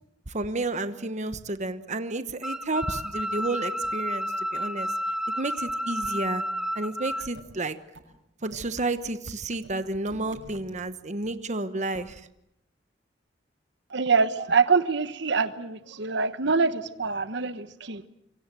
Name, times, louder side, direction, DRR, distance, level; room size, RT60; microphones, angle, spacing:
voice 1, 0.3-4.9 5.4-6.4 6.7-7.8 8.4-12.2, right 2 dB, 40° right, 11 dB, 1.1 m, -31 dB
sound 1, 2.4-7.3, equal, 5° right, 1.4 m, -31 dB
sound 2, 7.3-7.4 7.9-8.0 8.5-8.6 9.6-9.7 10.1-10.8 11.2-11.3, right 2 dB, 90° right, 6.6 m, -47 dB
voice 2, 13.9-18.1, right 4 dB, 65° right, 12 dB, 1.2 m, -25 dB
26.5 x 24.0 x 7.6 m, 0.80 s
head